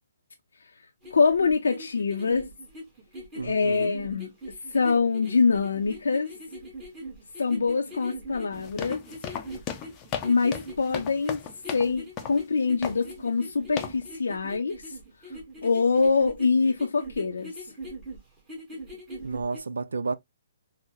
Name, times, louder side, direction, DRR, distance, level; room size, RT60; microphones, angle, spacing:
sound 1, 1.0-19.6, equal, 15° right, 1.2 m, -42 dB
voice 1, 1.1-2.5 3.4-4.3 4.7-6.3 7.4-9.0 10.2-11.4 11.7-14.9 15.6-17.5, left 4 dB, 80° left, 0.5 m, -24 dB
voice 2, 3.3-3.9 19.2-20.1, right 4 dB, 85° right, 0.4 m, -31 dB
sound 2, 8.5-11.9 12.2-12.4 12.8-13.1 13.8-14.0, left 8 dB, 25° left, 0.5 m, -36 dB
3.8 x 2.0 x 2.7 m
hypercardioid pair, 145°, 0 cm